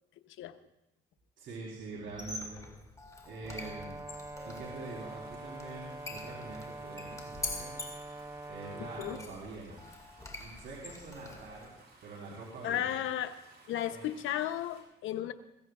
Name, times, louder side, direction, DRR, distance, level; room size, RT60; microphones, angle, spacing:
voice 1, 1.4-2.7 3.2-4.0 4.4-7.8 8.5-9.8 10.3-11.7 12.0-12.9 13.9-14.1, right 3 dB, 75° right, -4 dB, 3.8 m, -45 dB
Squeak, 2.1-11.7, left 2 dB, 15° left, 2.1 m, -45 dB
Brass instrument, 3.4-9.3, right 2 dB, 15° right, 0.8 m, -45 dB
sound 1, 4.3-14.8, right 3 dB, 55° right, 6.1 m, -59 dB
voice 2, 8.8-9.2 12.6-13.4 13.7-15.3, left 11 dB, 85° left, 9 dB, 0.9 m, -34 dB
21.5 x 16.0 x 2.4 m, 0.95 s
cardioid pair, 90°, 20 cm